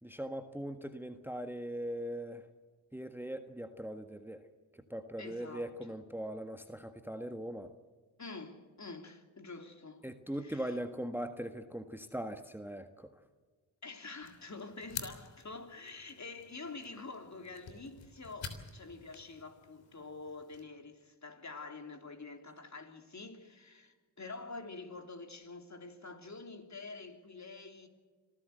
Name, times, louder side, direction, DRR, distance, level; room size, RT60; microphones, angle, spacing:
voice 1, 0.0-2.5 2.9-4.4 4.7-7.7 10.0-13.1, right 1 dB, 5° right, 1.5 m, -40 dB
voice 2, 5.2-5.7 8.2-10.1 10.4-10.8 13.8-27.9, left 3 dB, 35° left, 3.4 m, -47 dB
sound 1, 14.2-20.6, left 6 dB, 70° left, 3.4 m, -49 dB
26.0 x 15.0 x 8.0 m
supercardioid pair, 45°, 47 cm